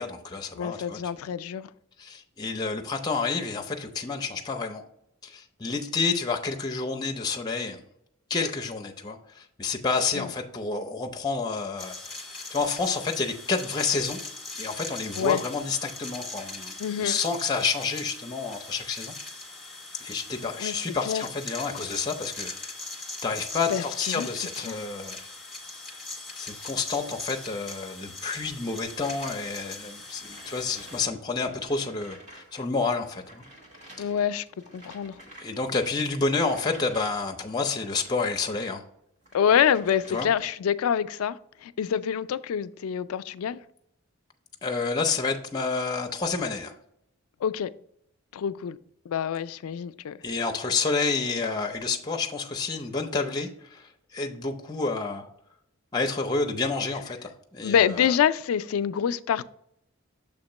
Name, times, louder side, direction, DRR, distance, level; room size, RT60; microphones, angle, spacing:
voice 1, 0.0-1.0 2.0-4.8 5.2-7.8 8.3-12.2 12.5-14.2 14.6-19.1 20.0-22.5 23.2-25.2 26.3-33.4 34.0-34.1 35.4-38.8 40.1-40.3 44.6-46.7 50.2-53.8 54.1-55.3 55.9-58.1, left 4 dB, 20° left, 0.5 m, -29 dB
voice 2, 0.6-1.7 10.1-10.3 15.2-15.4 16.8-17.2 20.6-20.8 21.1-21.2 23.7-24.3 24.7-24.8 34.0-34.4 34.7-35.1 39.3-43.6 47.4-47.7 48.3-48.8 49.1-50.2 57.6-59.5, left 8 dB, 85° left, 0.3 m, -26 dB
sound 1, 11.8-31.0, left 3 dB, ahead, 1.1 m, -40 dB
sound 2, 28.8-32.7 32.9-38.8 39.2-40.7, right 1 dB, 35° right, 1.4 m, -50 dB
6.9 x 2.9 x 5.3 m
head